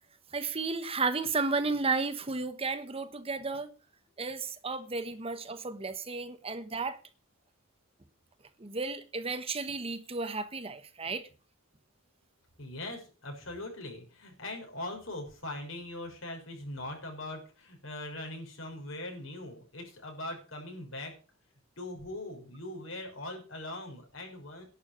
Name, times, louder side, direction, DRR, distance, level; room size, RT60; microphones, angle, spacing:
voice 1, 0.3-3.7 4.2-7.0 8.6-11.3, right 4 dB, 30° right, 1.1 m, -33 dB
voice 2, 12.6-21.1 21.8-24.6, left 1 dB, 70° left, 6.2 m, -41 dB
11.0 x 7.1 x 8.8 m
head